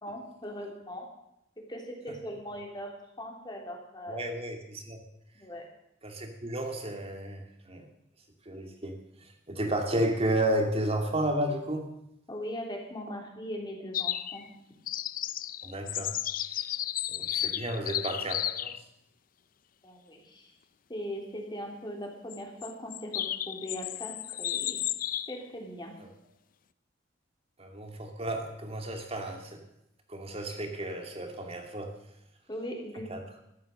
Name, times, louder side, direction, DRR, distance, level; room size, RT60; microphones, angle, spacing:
voice 1, 0.0-1.1 1.6-2.9 3.2-4.2 5.4-5.6 12.3-14.4 19.8-20.5 20.9-24.8 25.3-26.0 32.5-33.1, equal, 25° left, 1 dB, 3.2 m, -40 dB
voice 2, 4.1-5.0 6.0-7.9 8.5-11.9 13.1-13.2 15.6-16.1 17.1-18.8 27.6-29.6 30.1-31.9 33.1-33.2, right 1 dB, 35° right, 4 dB, 2.4 m, -32 dB
sound 1, 13.9-14.5 14.9-18.8 22.3-25.4, left 12 dB, 50° left, 0.5 m, -33 dB
14.0 x 12.0 x 6.6 m, 0.80 s
head